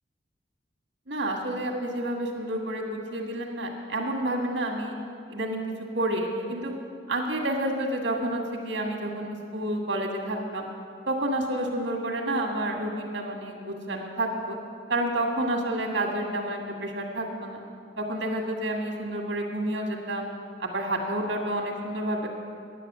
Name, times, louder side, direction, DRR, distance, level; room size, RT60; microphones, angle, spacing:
voice 1, 1.1-5.0 5.3-5.6 5.9-6.7 7.1-10.7 11.1-14.6 14.9-17.6 18.0-20.3 20.6-22.3, right 1 dB, 80° right, 1 dB, 1.8 m, -29 dB
10.0 x 8.6 x 6.7 m, 2.5 s
head